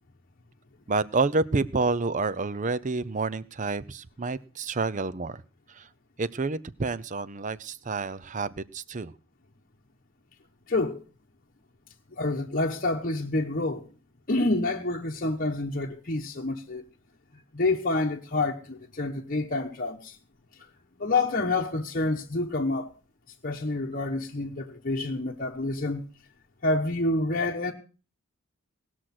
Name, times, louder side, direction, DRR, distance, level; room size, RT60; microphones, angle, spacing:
voice 1, 0.9-5.4 5.7-5.9 6.2-9.1, right 3 dB, 35° right, 0.6 m, -29 dB
voice 2, 10.7-11.0 12.1-13.9 14.3-16.8 17.5-20.2 21.0-22.9 23.4-26.0 26.6-27.7, left 2 dB, 40° left, 1.1 m, -28 dB
19.0 x 6.4 x 5.9 m
head